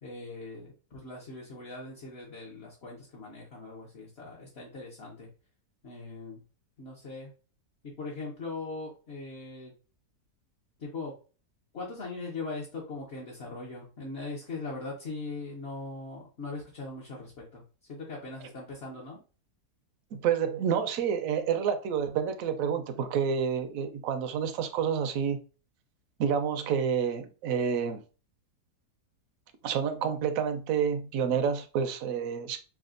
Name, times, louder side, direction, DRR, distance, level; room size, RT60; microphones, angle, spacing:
voice 1, 0.0-5.3 5.8-6.4 6.8-7.3 7.8-9.7 10.8-11.1 11.7-17.6 17.9-19.2, left 3 dB, 45° left, 1.1 m, -40 dB
voice 2, 20.1-25.4 26.2-28.0 29.6-32.6, right 7 dB, 70° right, 1.0 m, -29 dB
5.9 x 2.4 x 2.5 m
omnidirectional pair, 1.7 m